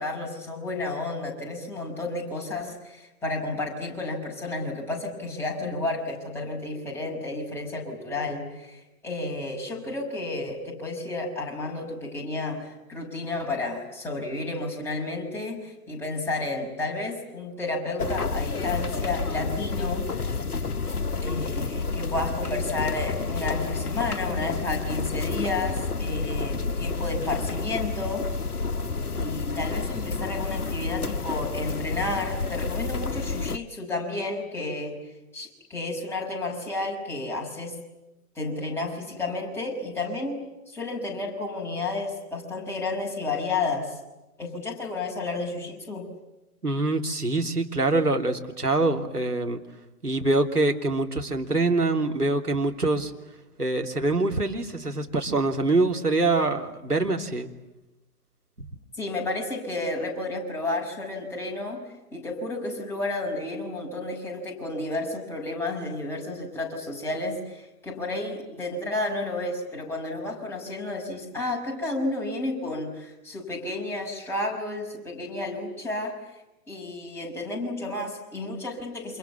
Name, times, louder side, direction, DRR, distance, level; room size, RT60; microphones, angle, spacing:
voice 1, 0.0-20.4 21.2-28.3 29.1-35.1 35.3-37.8 38.4-44.0 44.4-46.1 59.0-76.2 76.7-79.2, left 2 dB, 5° left, -3 dB, 6.1 m, -31 dB
sound 1, 18.0-33.6, left 4 dB, 75° left, 1.1 m, -30 dB
voice 2, 46.6-49.6 50.0-53.1 53.6-57.5, right 2 dB, 85° right, 3 dB, 3.3 m, -24 dB
29.0 x 27.5 x 7.3 m, 1.0 s
figure-of-eight pair, 125°, 45 cm